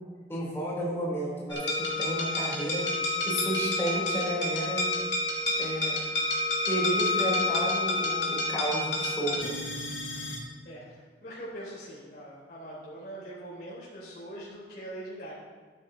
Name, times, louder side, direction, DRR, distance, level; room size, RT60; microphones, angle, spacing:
voice 1, 0.3-2.9 3.2-4.8 5.6-6.0 6.7-9.6, right 1 dB, 15° left, -6 dB, 3.1 m, -32 dB
sound 1, 1.5-10.4, left 2 dB, 70° left, 2.2 m, -29 dB
voice 2, 10.6-15.3, right 1 dB, 50° left, -9 dB, 3.5 m, -42 dB
12.5 x 10.0 x 2.7 m, 1.4 s
head